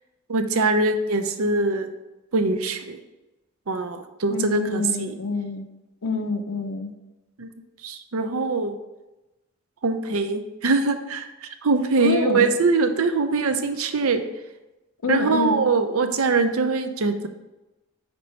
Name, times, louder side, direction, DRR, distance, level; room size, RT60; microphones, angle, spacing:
voice 1, 0.3-1.9 2.3-3.0 3.7-5.2 7.4-7.5 7.8-8.8 9.8-14.2 15.1-17.3, right 3 dB, 80° right, 8 dB, 0.6 m, -23 dB
voice 2, 4.3-5.7 6.0-6.9 12.0-12.5 15.0-15.6, left 4 dB, 85° left, 7 dB, 0.7 m, -27 dB
5.2 x 4.4 x 5.3 m, 1.0 s
head